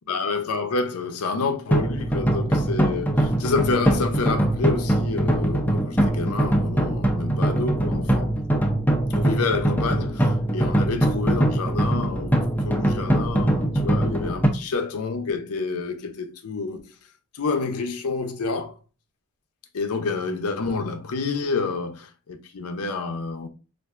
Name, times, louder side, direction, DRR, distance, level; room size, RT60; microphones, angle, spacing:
voice 1, 0.1-8.4 9.1-12.3 12.6-16.8 17.3-18.8 19.7-23.5, left 4 dB, 90° left, 0.6 m, -28 dB
sound 1, 1.7-14.5, right 1 dB, 10° left, 0.5 m, -22 dB
4.3 x 2.5 x 2.4 m
head